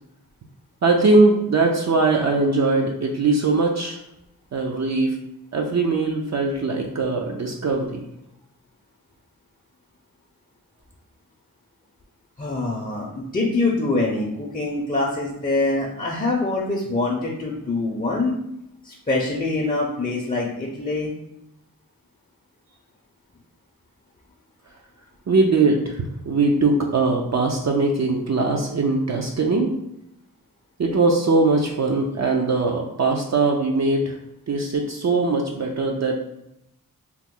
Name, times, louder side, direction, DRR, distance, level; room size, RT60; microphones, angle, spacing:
voice 1, 0.8-4.0 4.5-5.2 5.5-8.1 25.3-29.7 30.8-34.2 34.5-36.1, right 3 dB, 50° right, 1 dB, 0.4 m, -21 dB
voice 2, 12.4-18.4 18.8-21.1, left 2 dB, 25° left, -3 dB, 0.5 m, -24 dB
2.9 x 2.1 x 3.7 m, 0.82 s
wide cardioid pair, 70°, 36 cm